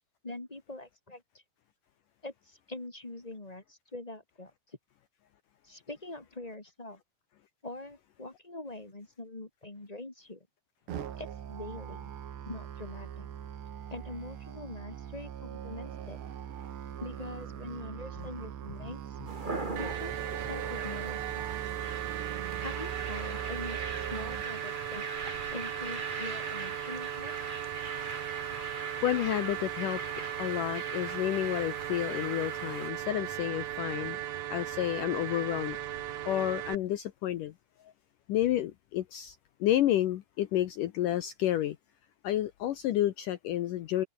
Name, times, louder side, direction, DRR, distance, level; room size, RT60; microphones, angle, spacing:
voice 1, 0.2-1.4 2.2-4.5 5.6-7.0 7.6-10.5 11.2-12.1 12.4-13.3 13.9-16.2 17.0-19.2 19.8-21.4 22.6-25.0 25.5-27.3, left 2 dB, 15° left, 1.2 m, -43 dB
Musical instrument, 10.9-24.4, right 9 dB, 85° right, 4.8 m, -41 dB
sound 1, 19.3-32.9, right 3 dB, 20° right, 1.3 m, -41 dB
sound 2, 19.8-36.8, right 12 dB, 65° right, 1.8 m, -37 dB
voice 2, 29.0-30.0 30.4-34.2 34.5-35.8 36.3-37.5 38.3-39.4 39.6-41.8 42.2-44.0, left 13 dB, 70° left, 2.1 m, -30 dB
omnidirectional pair, 4.8 m